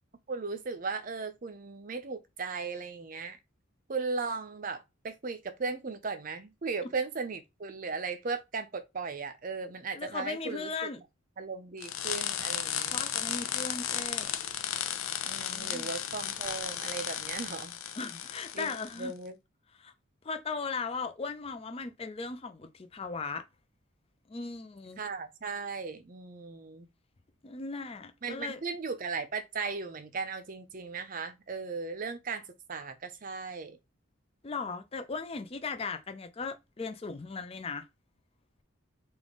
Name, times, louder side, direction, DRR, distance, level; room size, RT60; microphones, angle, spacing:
voice 1, 0.3-3.4 3.9-10.9 11.4-13.0 15.2-17.8 18.5-18.7 19.0-19.4 25.0-26.9 28.2-32.4 32.7-33.8, right 4 dB, 40° right, 0.6 m, -37 dB
voice 2, 9.9-11.0 12.9-14.3 15.5-15.9 18.0-19.1 19.8-19.9 20.2-23.4 24.3-25.0 27.4-28.6 34.4-37.9, left 4 dB, 30° left, 0.4 m, -37 dB
sound 1, 11.8-19.0, left 10 dB, 80° left, 0.5 m, -34 dB
3.7 x 2.5 x 3.5 m
head